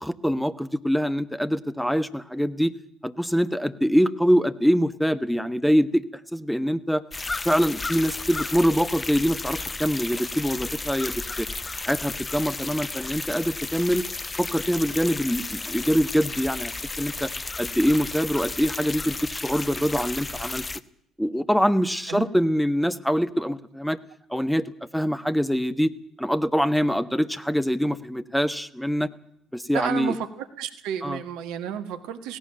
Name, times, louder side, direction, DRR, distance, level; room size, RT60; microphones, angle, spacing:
voice 1, 0.0-2.7 3.0-6.0 6.3-7.0 7.4-11.5 11.8-14.0 14.4-16.7 17.0-17.3 17.6-20.6 21.2-24.0 24.3-24.6 24.9-25.9 26.2-29.1 29.5-30.1 31.0-31.2, equal, ahead, 12 dB, 1.3 m, -24 dB
sound 1, 7.1-20.8, left 3 dB, 25° left, 0.9 m, -33 dB
voice 2, 29.7-32.4, right 9 dB, 65° right, 9 dB, 1.4 m, -32 dB
17.5 x 17.5 x 9.0 m, 0.69 s
figure-of-eight pair, 50°, 0 cm